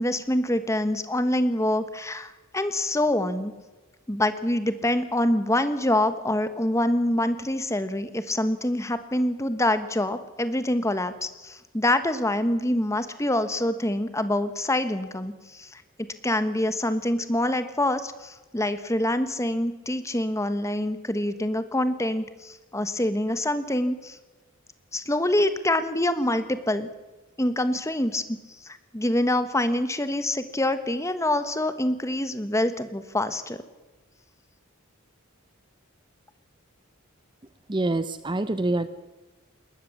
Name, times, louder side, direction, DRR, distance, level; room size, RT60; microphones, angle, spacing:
voice 1, 0.0-3.5 4.1-24.2 24.9-26.9 27.4-33.6, left 1 dB, 15° left, 11 dB, 1.3 m, -26 dB
voice 2, 37.7-38.9, right 2 dB, 20° right, 12 dB, 0.7 m, -26 dB
21.5 x 19.0 x 7.3 m, 1.1 s
head